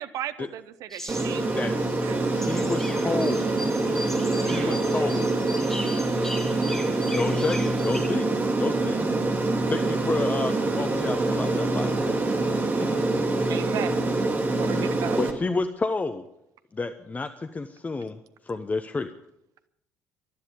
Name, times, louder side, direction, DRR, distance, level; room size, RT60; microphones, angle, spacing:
voice 1, 0.0-2.2 2.9-3.1 4.4-4.7 7.2-7.4 9.1-9.3 13.5-14.0 14.6-15.2, right 11 dB, 55° right, 14 dB, 0.8 m, -36 dB
sound 1, 0.9-8.1, equal, 5° left, 2.7 m, -39 dB
Aircraft, 1.1-15.3, right 2 dB, 30° right, 2.4 m, -25 dB
voice 2, 2.3-3.5 4.5-5.2 7.1-8.3 8.6-9.0 9.7-12.4 12.9-13.0 14.7-14.9 15.2-16.2 16.8-17.3 17.5-18.2 18.5-19.1, left 3 dB, 20° left, 10 dB, 0.9 m, -30 dB
voice 3, 4.3-6.9, left 1 dB, 60° left, 3 dB, 6.4 m, -45 dB
19.0 x 12.5 x 5.2 m, 0.80 s
figure-of-eight pair, 50°, 7 cm